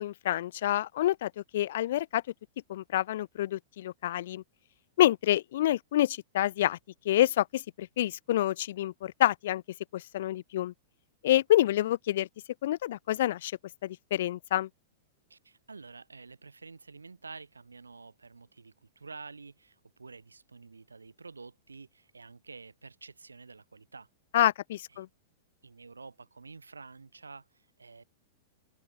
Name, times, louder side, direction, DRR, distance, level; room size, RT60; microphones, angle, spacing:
voice 1, 0.0-2.2 2.7-4.4 5.0-6.8 7.1-9.6 9.9-10.7 11.2-12.3 12.6-13.5 13.8-14.7 24.3-25.1, left 13 dB, 60° left, 0.4 m, -27 dB
voice 2, 15.3-24.1 24.9-25.0 25.6-28.0, right 4 dB, 90° right, 4.1 m, -49 dB
open air
hypercardioid pair, 105°, 0 cm